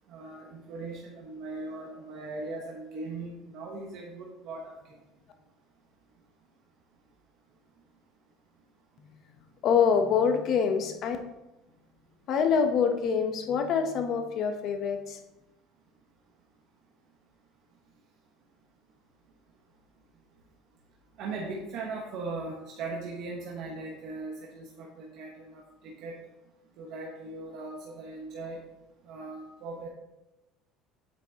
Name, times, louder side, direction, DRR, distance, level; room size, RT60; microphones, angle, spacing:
voice 1, 0.1-5.0 21.2-26.2 26.8-28.6 29.0-29.9, right 3 dB, 55° right, -2 dB, 1.0 m, -39 dB
voice 2, 9.6-11.2 12.3-15.2, left 6 dB, 45° left, 6 dB, 0.8 m, -25 dB
8.4 x 5.9 x 2.9 m, 0.97 s
cardioid pair, 155°, 0 cm